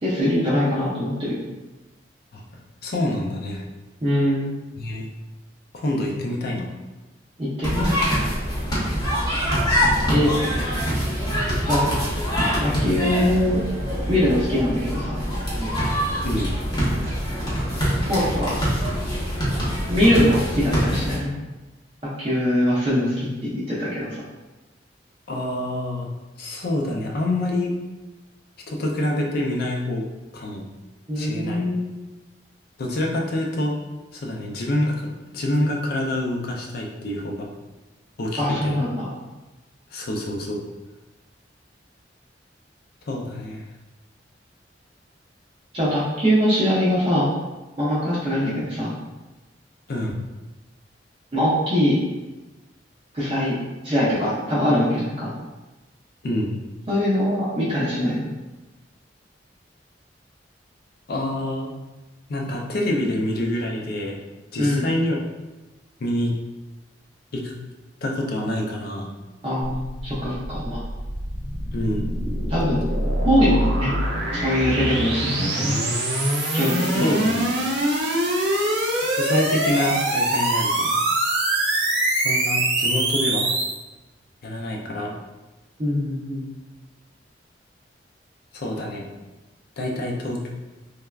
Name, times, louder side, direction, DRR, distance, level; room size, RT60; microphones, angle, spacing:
voice 1, 0.0-1.4 4.0-4.5 7.4-8.0 10.1-10.3 11.6-11.8 12.6-13.6 14.1-15.1 15.6-15.7 18.1-18.5 19.9-21.3 22.2-24.2 31.1-31.9 38.4-39.1 45.7-47.3 47.8-49.0 51.3-52.0 53.1-53.6 53.8-55.3 56.9-58.3 64.6-64.9 69.4-70.8 72.5-72.9 73.2-73.9 74.3-75.7 76.5-77.1 85.8-86.5, equal, 30° right, -9 dB, 0.6 m, -22 dB
voice 2, 2.8-3.6 4.8-5.1 5.7-6.7 16.2-16.5 25.3-26.1 26.4-27.7 28.7-30.1 30.3-30.6 31.2-31.7 32.8-33.8 34.1-35.1 35.3-37.5 38.2-38.8 39.9-40.6 43.1-43.6 49.9-50.2 56.2-56.6 61.1-61.7 62.3-64.2 64.5-65.3 66.0-66.3 67.3-67.5 68.0-69.1 71.7-72.1 76.8-77.5 79.2-80.9 82.2-83.5 84.4-85.2 88.5-89.1 89.8-90.5, left 1 dB, 60° left, 0 dB, 0.5 m, -26 dB
sound 1, 7.6-21.2, equal, 25° left, 0.8 m, -24 dB
sound 2, 69.6-83.8, right 1 dB, 75° right, 0.6 m, -24 dB
3.2 x 2.1 x 2.3 m, 1.1 s
head